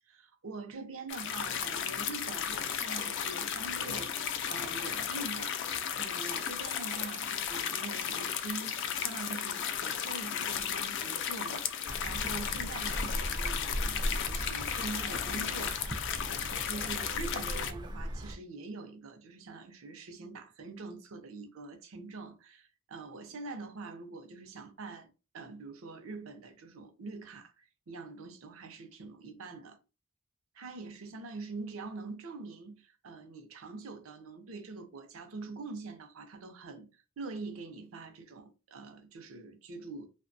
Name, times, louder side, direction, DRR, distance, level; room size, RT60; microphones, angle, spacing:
voice 1, 0.1-4.1 4.5-15.8 16.2-29.8 30.5-36.9 37.2-40.1, right 3 dB, 80° right, 0.6 m, -44 dB
sound 1, 1.1-17.7, left 8 dB, 60° left, 0.4 m, -35 dB
sound 2, 11.8-18.3, equal, 20° right, 0.3 m, -38 dB
2.8 x 2.1 x 2.5 m
head